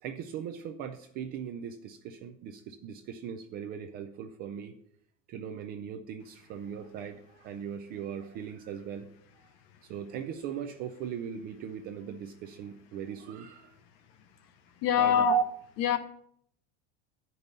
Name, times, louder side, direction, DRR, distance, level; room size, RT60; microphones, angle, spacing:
voice 1, 0.0-4.8 5.3-9.1 9.8-13.8 15.0-15.4, right 9 dB, 30° right, 0.3 m, -37 dB
voice 2, 14.8-15.4 15.8-16.0, left 9 dB, 45° left, 0.9 m, -24 dB
12.0 x 5.3 x 4.1 m
supercardioid pair, 160°, 36 cm